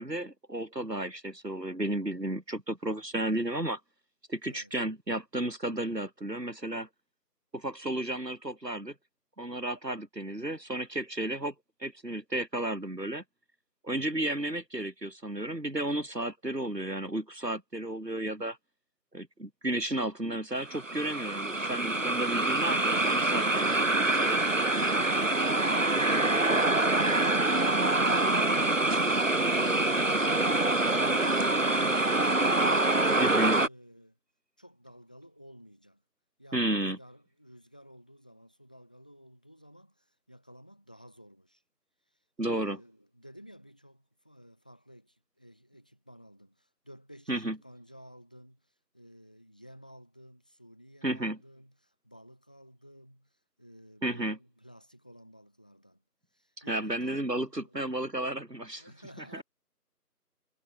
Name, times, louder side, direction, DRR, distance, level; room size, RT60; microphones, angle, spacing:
voice 1, 0.0-3.8 4.3-6.9 7.5-8.9 9.4-11.5 11.8-13.2 13.8-18.6 19.1-24.4 33.2-33.6 36.5-37.0 42.4-42.8 47.3-47.6 51.0-51.4 54.0-54.4 56.6-58.9, right 1 dB, 85° right, 6.5 m, -33 dB
voice 2, 4.4-4.8 29.6-34.2 34.6-36.0 36.4-41.6 42.1-56.0 56.3-58.0 58.8-59.4, equal, 5° left, 5.9 m, -54 dB
sound 1, 20.6-33.7, right 2 dB, 50° right, 0.9 m, -25 dB
figure-of-eight pair, 180°, 48 cm